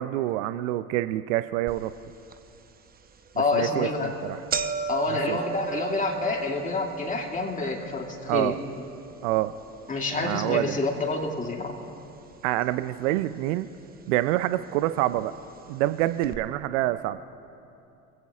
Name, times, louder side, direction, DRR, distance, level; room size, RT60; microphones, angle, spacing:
voice 1, 0.0-1.9 3.5-3.9 4.2-4.4 5.1-5.4 8.3-8.6 9.2-9.5 10.2-10.8 12.4-13.7 14.1-15.3 15.7-17.3, right 15 dB, 65° right, 13 dB, 0.6 m, -26 dB
sound 1, 1.7-1.8 2.3-2.4 3.2-3.4 3.8-3.9 4.1-12.3 12.6-13.3 14.1-14.2 15.2-15.3 15.6-15.7 16.2-16.4, right 6 dB, 20° right, 0.9 m, -36 dB
voice 2, 3.4-4.1 4.9-8.5 9.9-11.7, left 3 dB, 20° left, 1 dB, 2.4 m, -28 dB
25.5 x 16.5 x 2.5 m, 2.7 s
hypercardioid pair, 80°, 41 cm